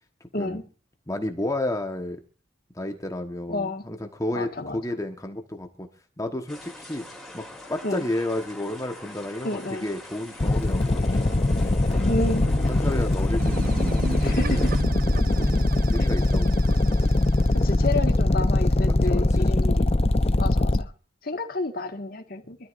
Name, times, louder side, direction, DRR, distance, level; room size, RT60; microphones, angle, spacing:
voice 1, 1.1-2.2 2.7-5.9 6.2-7.0 7.3-7.4 7.7-11.2 11.9-12.1 12.7-14.7 15.3-16.5 19.0-19.7 20.2-20.4, left 1 dB, 15° left, 1.3 m, -32 dB
voice 2, 3.5-3.9 4.3-4.8 7.8-8.0 9.4-9.9 12.0-12.5 14.2-14.7 17.5-19.9 20.4-20.9 21.2-22.6, left 2 dB, 50° left, 1.7 m, -30 dB
sound 1, 6.5-14.8, left 1 dB, ahead, 3.6 m, -43 dB
sound 2, 10.4-20.8, left 2 dB, 35° left, 0.7 m, -22 dB
sound 3, 13.4-17.7, right 2 dB, 50° right, 0.7 m, -32 dB
25.0 x 13.0 x 2.6 m
head